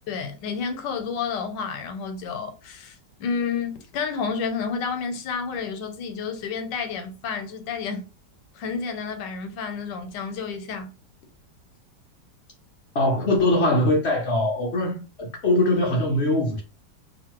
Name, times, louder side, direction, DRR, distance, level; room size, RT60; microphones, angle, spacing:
voice 1, 0.1-8.1 8.5-10.9, left 5 dB, 90° left, 1.3 m, -30 dB
voice 2, 12.9-16.6, left 1 dB, 70° left, 0.6 m, -22 dB
2.9 x 2.5 x 2.9 m
omnidirectional pair, 1.9 m